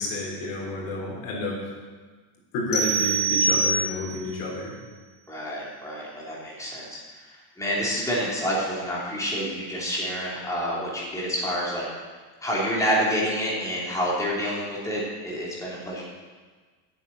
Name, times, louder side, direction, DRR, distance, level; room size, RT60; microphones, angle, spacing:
voice 1, 0.0-1.6 2.5-4.7, left 1 dB, 85° left, -2 dB, 3.8 m, -30 dB
sound 1, 2.7-4.2, right 3 dB, 35° left, 1.8 m, -24 dB
voice 2, 5.3-7.0 7.6-11.8 12.4-16.0, equal, 10° left, -6 dB, 3.1 m, -28 dB
8.7 x 7.3 x 8.9 m, 1.4 s
cardioid pair, 165°, 40 cm